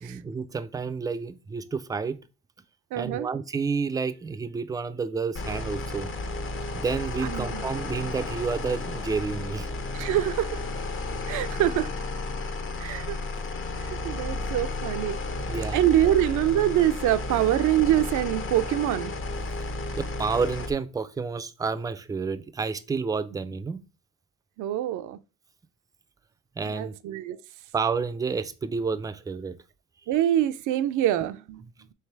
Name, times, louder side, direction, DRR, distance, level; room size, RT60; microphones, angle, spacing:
voice 1, 0.0-2.2 3.0-6.1 6.7-9.7 15.4-15.8 20.0-23.8 26.6-26.9 27.7-29.5, right 5 dB, 15° right, 0.3 m, -30 dB
voice 2, 2.9-3.3 7.2-7.6 9.9-10.6 11.3-11.9 12.8-13.2 14.0-15.2 15.7-19.1 24.6-25.2 26.7-27.4 30.1-31.6, right 12 dB, 80° right, 0.5 m, -25 dB
sound 1, 5.4-20.7, left 2 dB, 40° left, 0.8 m, -33 dB
3.3 x 3.2 x 4.5 m
cardioid pair, 90°, 30 cm